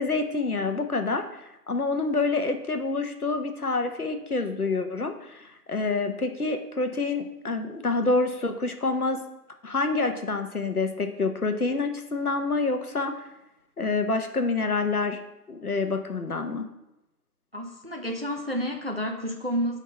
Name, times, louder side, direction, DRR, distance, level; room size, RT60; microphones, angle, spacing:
voice 1, 0.0-9.2 9.6-13.2 13.8-15.2 15.5-16.7, left 3 dB, 60° left, 7 dB, 1.0 m, -27 dB
voice 2, 17.5-19.8, equal, 35° right, 3 dB, 0.7 m, -30 dB
9.2 x 3.7 x 4.3 m, 0.92 s
figure-of-eight pair, 170°, 50 cm